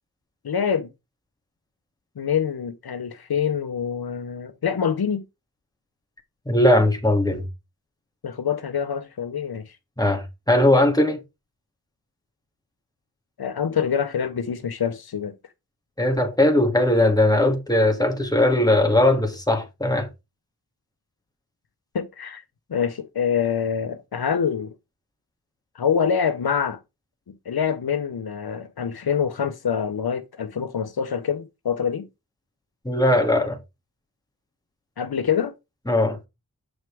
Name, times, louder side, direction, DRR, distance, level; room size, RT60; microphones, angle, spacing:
voice 1, 0.4-0.9 2.2-5.2 8.2-9.7 13.4-15.3 21.9-22.4 22.7-24.7 25.8-26.8 27.5-32.1 35.0-35.5, left 7 dB, 90° left, 0.8 m, -25 dB
voice 2, 6.5-7.4 10.0-11.2 16.0-20.1 32.8-33.6 35.9-36.2, left 1 dB, 10° left, 2.4 m, -19 dB
8.0 x 6.3 x 3.4 m
wide cardioid pair, 40°, 36 cm